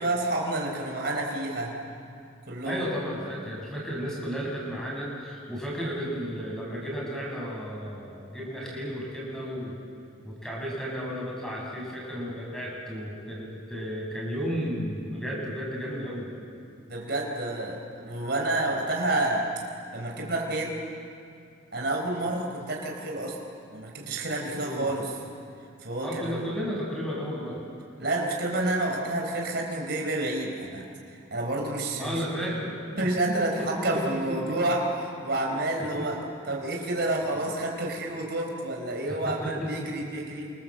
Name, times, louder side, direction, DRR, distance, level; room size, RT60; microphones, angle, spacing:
voice 1, 0.0-1.7 2.5-2.9 16.9-19.5 19.9-20.8 21.7-23.4 23.7-25.2 25.8-26.4 28.0-30.8 31.3-32.2 33.0-36.2 36.5-40.5, right 2 dB, 55° right, 0 dB, 4.5 m, -29 dB
voice 2, 2.6-9.8 10.2-16.3 24.6-24.9 26.0-27.7 32.0-33.1 33.6-34.6 35.5-35.9 39.1-39.7, equal, 5° left, -4 dB, 7.5 m, -33 dB
28.0 x 27.0 x 7.8 m, 2.5 s
head